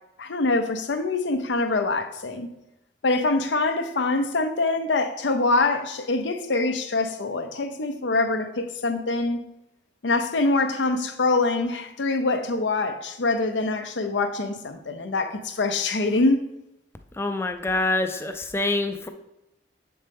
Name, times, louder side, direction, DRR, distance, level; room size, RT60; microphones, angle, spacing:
voice 1, 0.2-2.5 3.0-9.4 10.0-16.4, left 3 dB, 75° left, 0.6 m, -24 dB
voice 2, 17.2-19.1, left 2 dB, 15° left, 0.3 m, -26 dB
7.4 x 4.3 x 3.4 m
head